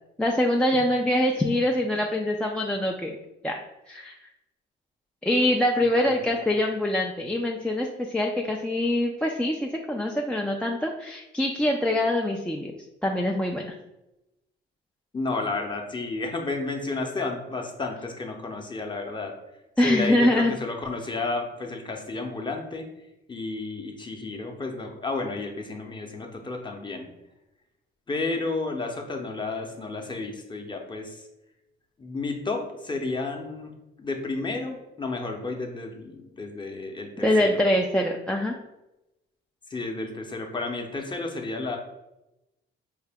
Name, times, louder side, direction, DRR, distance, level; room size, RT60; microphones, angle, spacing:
voice 1, 0.2-3.2 3.4-3.5 3.9-4.2 5.2-12.7 13.0-13.7 19.8-20.5 37.2-38.5, left 1 dB, 5° left, -1 dB, 0.3 m, -24 dB
voice 2, 5.8-6.4 15.1-19.3 19.8-22.9 23.3-27.1 28.1-31.2 32.0-33.7 34.0-37.6 39.7-41.8, left 3 dB, 25° left, 3 dB, 0.7 m, -32 dB
4.7 x 2.1 x 3.4 m, 0.94 s
cardioid pair, 90°, 20 cm